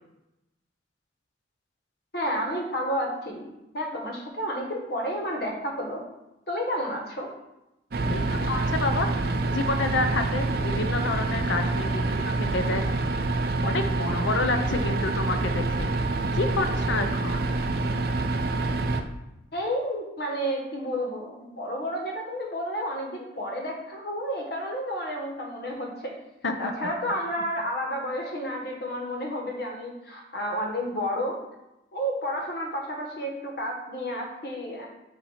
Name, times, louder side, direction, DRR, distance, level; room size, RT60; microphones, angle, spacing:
voice 1, 2.1-3.5 3.7-6.0 6.5-7.3 19.5-26.1 26.6-31.4 31.9-34.9, equal, 55° left, 0 dB, 1.5 m, -31 dB
sound 1, 7.9-19.0, right 2 dB, 55° right, 0.5 m, -26 dB
voice 2, 8.0-9.1 9.5-12.2 12.5-12.8 13.6-15.9 16.3-17.6 26.4-26.7, left 3 dB, 80° left, 6 dB, 0.7 m, -29 dB
8.4 x 2.8 x 5.7 m, 0.92 s
head